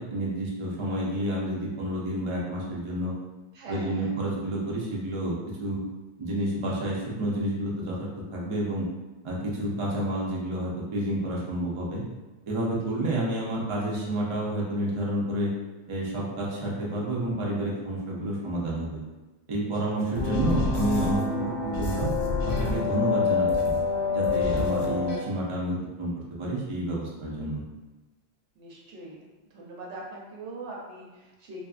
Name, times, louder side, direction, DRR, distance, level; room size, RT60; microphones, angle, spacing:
voice 1, 0.0-3.1 3.7-5.8 6.2-8.9 9.2-12.0 12.5-15.5 15.9-19.0 19.5-22.1 22.5-23.8 24.1-27.6, right 1 dB, 45° right, -5 dB, 0.4 m, -29 dB
voice 2, 3.5-4.1 12.8-12.9 19.6-20.1 28.6-29.2 29.5-31.6, right 2 dB, 75° right, -3 dB, 0.9 m, -42 dB
sound 1, 20.2-25.2, left 4 dB, 85° left, 0.9 m, -26 dB
2.6 x 2.3 x 2.4 m, 1.1 s
omnidirectional pair, 1.2 m